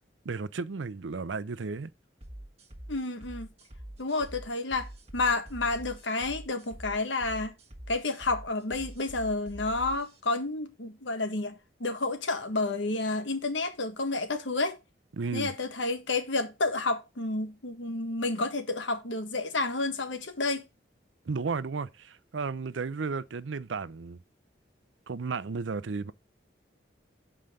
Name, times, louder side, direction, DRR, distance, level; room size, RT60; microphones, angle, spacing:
voice 1, 0.2-1.9 15.1-15.5 21.3-24.2 25.1-26.1, right 4 dB, 85° right, 0.6 m, -33 dB
sound 1, 2.2-10.2, right 1 dB, 35° right, 1.4 m, -45 dB
voice 2, 2.9-3.5 4.0-7.5 7.9-11.5 11.8-14.8 15.3-20.6, left 3 dB, 85° left, 1.6 m, -30 dB
7.7 x 5.0 x 5.1 m
head